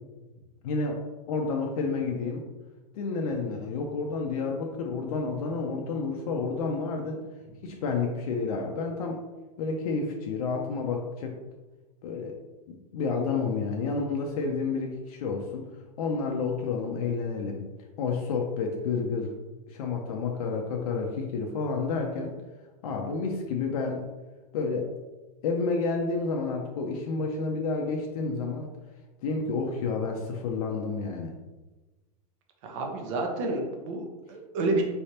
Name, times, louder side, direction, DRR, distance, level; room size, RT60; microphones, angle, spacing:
voice 1, 0.6-1.0 1.3-2.4 2.9-7.2 7.6-9.2 9.6-11.4 12.0-12.3 12.9-15.7 16.0-17.6 18.0-19.3 19.7-22.3 22.8-24.0 24.5-24.9 25.4-28.7 29.2-31.3, left 4 dB, 65° left, 1 dB, 0.7 m, -30 dB
voice 2, 32.6-34.8, right 2 dB, 50° right, 2 dB, 0.9 m, -29 dB
4.6 x 3.3 x 2.8 m, 1.2 s
supercardioid pair, 145°, 20 cm